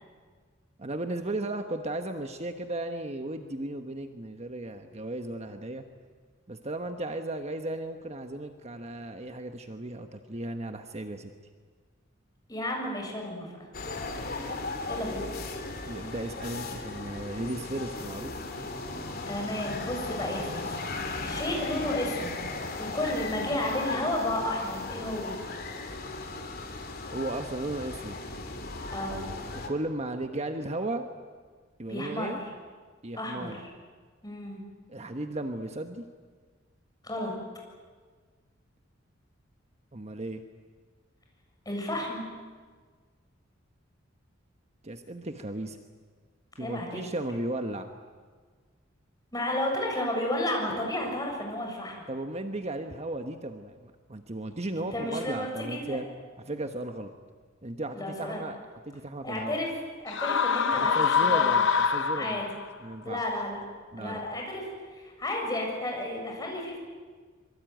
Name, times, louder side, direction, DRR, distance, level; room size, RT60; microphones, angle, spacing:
voice 1, 0.8-5.8 6.5-11.3 14.5-14.6 15.9-18.3 27.1-28.2 29.5-31.1 31.8-32.4 33.0-33.6 34.9-36.0 39.9-40.4 44.8-45.8 46.6-47.9 52.1-56.0 56.4-57.1 57.6-59.6 60.8-62.5 62.8-63.2 63.9-64.2, right 2 dB, 35° right, 6 dB, 1.3 m, -35 dB
voice 2, 12.5-13.5 14.9-15.2 19.3-22.4 22.8-25.4 28.9-29.3 31.9-32.4 33.2-33.5 34.2-34.6 37.0-37.3 41.7-42.3 46.6-47.1 49.3-52.0 54.7-56.0 57.9-58.4 59.2-59.7 60.0-61.5 62.2-62.5 63.0-63.6 64.0-64.7 64.9-66.8, left 1 dB, 20° left, 0 dB, 6.9 m, -32 dB
sound 1, 13.7-29.7, left 3 dB, 50° left, 3.2 m, -36 dB
sound 2, 60.1-62.7, left 6 dB, 65° left, 0.8 m, -25 dB
25.5 x 24.0 x 9.3 m, 1.5 s
head